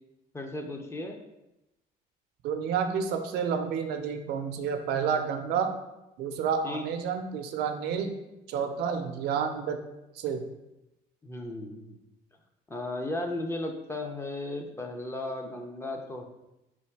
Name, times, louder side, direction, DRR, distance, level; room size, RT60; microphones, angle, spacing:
voice 1, 0.3-1.2 6.6-6.9 11.2-12.0 12.7-16.3, left 2 dB, 15° left, 3 dB, 0.5 m, -35 dB
voice 2, 2.4-5.7 6.2-8.1 8.5-9.8 10.2-10.4, right 6 dB, 75° right, 7 dB, 0.5 m, -30 dB
3.4 x 2.6 x 4.5 m, 0.92 s
cardioid pair, 110°, 17 cm